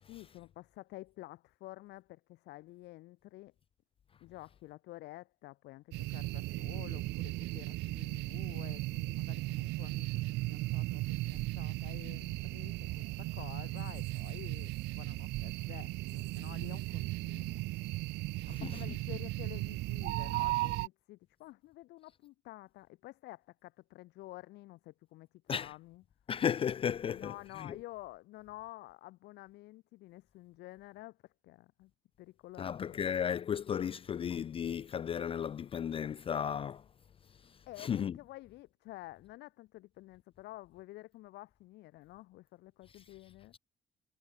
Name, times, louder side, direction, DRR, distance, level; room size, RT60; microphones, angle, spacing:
voice 1, 0.1-3.5 4.2-17.6 18.5-26.0 27.0-31.2 31.4-31.9 32.2-33.2 37.7-43.5, left 18 dB, 85° left, 5.0 m, -50 dB
sound 1, 5.9-20.9, right 20 dB, 85° right, 1.1 m, -36 dB
voice 2, 18.5-18.8 25.5-25.7 26.3-27.8 32.6-36.8 37.8-38.2, left 8 dB, 35° left, 0.4 m, -34 dB
cardioid pair, 110°, 17 cm